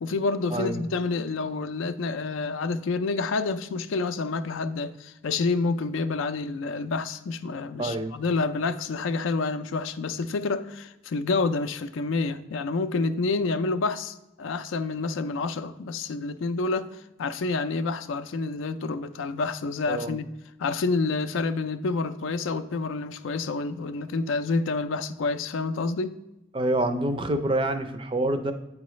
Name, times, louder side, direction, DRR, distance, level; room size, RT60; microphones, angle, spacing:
voice 1, 0.0-20.3 20.6-26.2, left 3 dB, 80° left, 0.4 m, -28 dB
voice 2, 7.8-8.1 19.9-20.2 26.5-28.5, right 1 dB, 25° right, 0.4 m, -26 dB
8.5 x 4.7 x 3.1 m
head